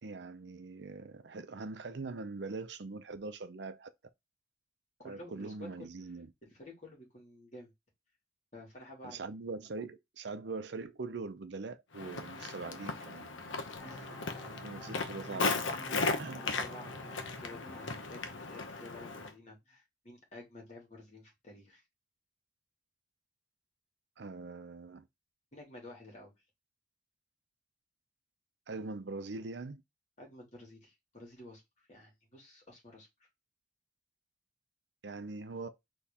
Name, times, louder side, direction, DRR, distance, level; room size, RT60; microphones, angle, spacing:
voice 1, 0.0-3.9 5.0-6.3 9.0-13.6 14.6-15.7 16.2-16.5 24.2-25.0 28.7-29.8 35.0-35.7, right 3 dB, 65° right, 0.6 m, -42 dB
voice 2, 5.0-5.9 6.4-7.7 8.5-9.2 13.8-14.6 16.3-21.8 25.5-26.3 30.2-33.3, left 2 dB, 40° left, 2.4 m, -51 dB
Walk footsteps, 11.9-19.3, left 3 dB, 85° left, 0.9 m, -37 dB
sound 1, 13.8-19.2, equal, 15° left, 1.3 m, -51 dB
4.2 x 3.1 x 3.6 m
head